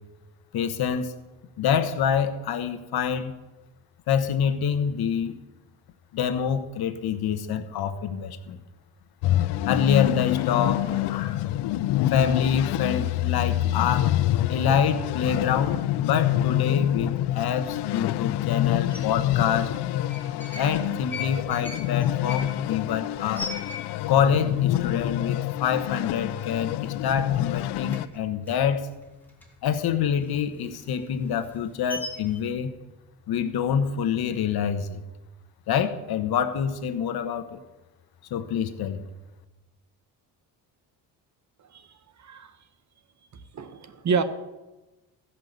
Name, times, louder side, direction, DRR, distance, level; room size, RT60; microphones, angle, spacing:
voice 1, 0.5-1.1 1.6-3.3 4.1-5.4 6.1-8.6 9.6-11.4 12.1-14.1 14.5-19.7 20.5-23.5 24.1-28.9 29.6-32.7 33.3-35.0 35.7-37.6 38.3-39.0, left 7 dB, 65° left, 9 dB, 1.2 m, -26 dB
sound 1, 9.2-28.1, left 13 dB, 85° left, 0.6 m, -26 dB
sound 2, 18.9-19.0 19.9-20.7 21.0-24.3 24.6-24.7 24.9-25.4 25.9-26.0 26.3-27.1 27.4-29.7 30.1-32.4, left 3 dB, 5° left, 2.9 m, -38 dB
voice 2, 41.7-42.6 43.3-44.2, right 5 dB, 45° right, 11 dB, 1.2 m, -29 dB
15.5 x 5.8 x 8.0 m, 1.1 s
cardioid pair, 95°, 39 cm